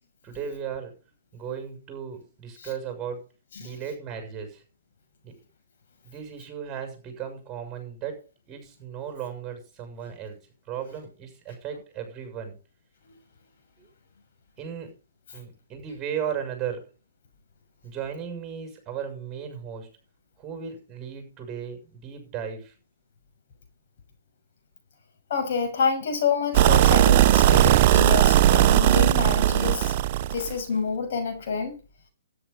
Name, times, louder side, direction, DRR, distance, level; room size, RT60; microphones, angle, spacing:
voice 1, 0.2-0.9 1.3-3.2 3.6-4.6 5.2-5.4 6.0-10.4 10.7-12.6 13.8-13.9 14.6-14.9 15.3-16.9 17.8-19.9 20.4-22.7, right 8 dB, 20° right, 6 dB, 6.7 m, -36 dB
voice 2, 25.3-29.9 30.3-31.7, left 5 dB, 55° left, 4 dB, 6.6 m, -28 dB
sound 1, 26.5-30.5, right 12 dB, 40° right, 0.8 m, -18 dB
13.0 x 10.0 x 5.5 m, 0.33 s
hypercardioid pair, 130°, 0 cm